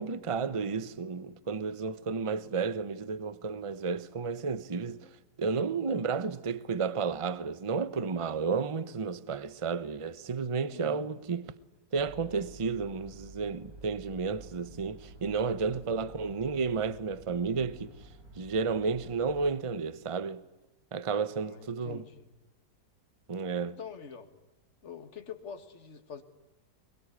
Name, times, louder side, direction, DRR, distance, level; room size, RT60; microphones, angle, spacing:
voice 1, 0.0-5.1 5.4-11.5 11.9-17.9 18.4-20.4 20.9-22.0 23.3-23.8, right 5 dB, 25° right, 0.8 m, -32 dB
voice 2, 10.7-11.0 21.3-22.3 23.8-24.3 24.8-26.2, left 6 dB, 45° left, 2.1 m, -45 dB
sound 1, 12.0-19.5, right 2 dB, 60° right, 5.0 m, -51 dB
23.5 x 22.0 x 9.9 m
omnidirectional pair, 1.8 m